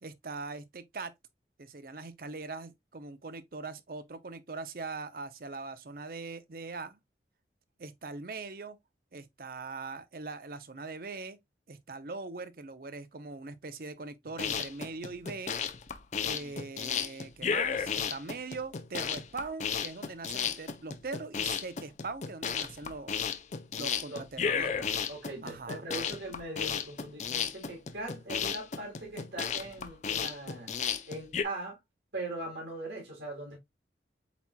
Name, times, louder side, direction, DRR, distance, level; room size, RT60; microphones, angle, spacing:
voice 1, 0.0-1.1 1.6-7.0 7.8-8.8 9.1-11.4 11.7-15.6 16.2-23.2 23.8-24.7 25.4-25.8, right 3 dB, 55° right, 0.6 m, -41 dB
sound 1, 14.3-31.4, left 7 dB, 40° left, 0.4 m, -33 dB
voice 2, 24.1-30.7 31.1-31.8 32.1-33.6, right 2 dB, 90° right, 2.7 m, -41 dB
8.2 x 2.9 x 2.2 m
head